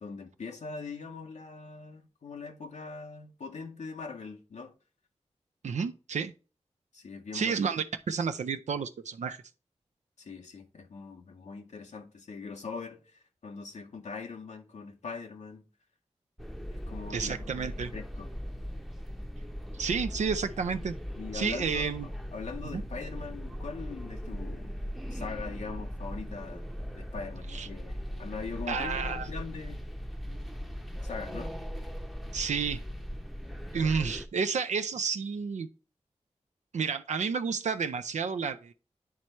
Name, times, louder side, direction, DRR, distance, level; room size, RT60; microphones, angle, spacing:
voice 1, 0.0-4.7 6.9-7.6 10.2-15.7 16.7-18.3 21.2-24.7 25.1-29.8 31.0-31.5, left 4 dB, 85° left, 0.7 m, -42 dB
voice 2, 5.6-6.3 7.3-9.4 17.1-17.9 19.7-20.9 21.3-22.1 22.7-22.8 27.5-27.7 28.7-29.3 32.3-32.8 33.7-35.7 36.7-38.7, right 5 dB, 90° right, 0.4 m, -31 dB
sound 1, 16.4-34.3, equal, ahead, 0.7 m, -39 dB
9.4 x 3.2 x 4.3 m
cardioid pair, 50°, 12 cm